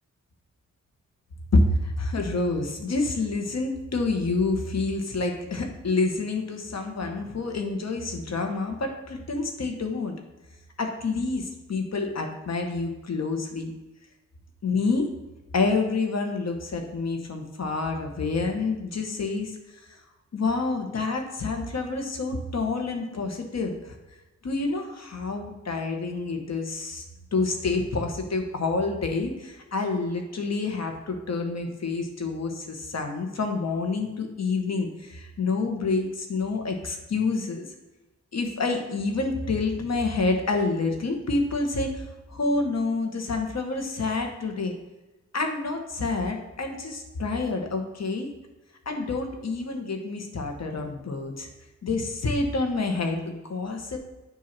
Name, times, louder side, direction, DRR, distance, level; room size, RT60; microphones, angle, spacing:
voice 1, 1.5-10.1 10.8-13.7 14.6-15.1 15.5-19.5 20.3-23.9 24.4-27.0 27.3-37.7 38.3-42.0 42.3-44.7 45.3-48.3 48.9-51.5 51.8-54.0, left 3 dB, 65° left, 4 dB, 1.1 m, -28 dB
7.7 x 2.7 x 5.9 m, 1.1 s
cardioid pair, 60°, 29 cm